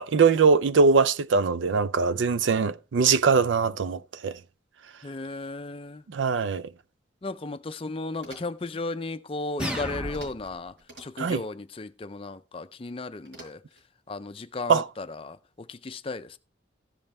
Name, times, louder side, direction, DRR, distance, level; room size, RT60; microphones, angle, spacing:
voice 1, 0.0-4.4 6.1-6.7 11.2-11.4 14.7-14.9, right 5 dB, 80° right, 0.5 m, -22 dB
voice 2, 5.0-6.0 7.2-13.6 14.1-16.4, left 3 dB, 30° left, 0.4 m, -35 dB
sound 1, 8.1-8.7 10.1-10.5 10.8-11.4 13.2-13.9, right 1 dB, 65° right, 4.7 m, -49 dB
sound 2, 9.6-10.6, equal, 5° right, 0.9 m, -33 dB
15.0 x 5.5 x 4.2 m
head